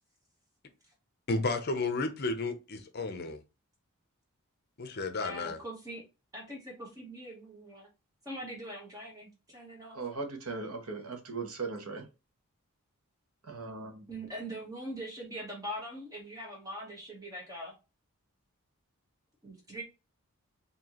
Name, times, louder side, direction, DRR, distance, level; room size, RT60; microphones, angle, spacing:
voice 1, 1.3-3.4 4.8-5.6, left 3 dB, 45° left, 0.6 m, -32 dB
voice 2, 5.1-6.0 6.3-7.9 8.2-10.0 14.1-17.7 19.4-19.8, equal, 15° right, 1.0 m, -42 dB
voice 3, 9.9-12.0 13.4-14.1, right 4 dB, 75° right, 1.0 m, -38 dB
4.4 x 2.7 x 2.9 m
head